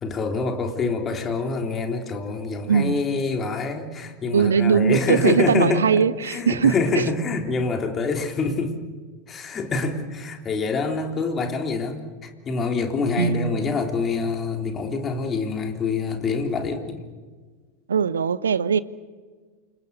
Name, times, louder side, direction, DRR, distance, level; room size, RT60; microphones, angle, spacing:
voice 1, 0.0-8.7 9.3-17.0, left 4 dB, 25° left, 4 dB, 3.6 m, -26 dB
voice 2, 2.7-3.0 4.3-7.1 13.2-13.7 17.9-18.8, right 7 dB, 70° right, 18 dB, 0.9 m, -21 dB
28.5 x 25.5 x 6.9 m, 1.5 s
figure-of-eight pair, 90°, 0 cm